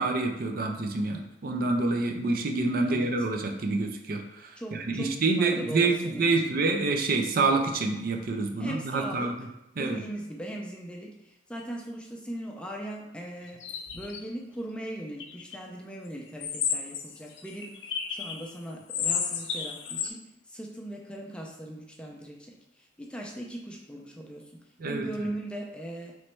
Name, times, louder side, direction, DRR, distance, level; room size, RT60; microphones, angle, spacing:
voice 1, 0.0-9.3 9.8-10.0 24.8-25.1, right 3 dB, 55° right, 3 dB, 0.5 m, -27 dB
voice 2, 4.6-5.1 5.4-6.3 8.6-9.3 9.8-13.6 13.9-17.7 18.1-20.2 20.5-26.2, right 1 dB, 5° left, -1 dB, 0.5 m, -39 dB
sound 1, 13.5-14.2 15.2-15.6 16.4-18.5 18.9-20.1, left 7 dB, 85° left, 0.5 m, -32 dB
3.1 x 3.1 x 4.4 m, 0.94 s
head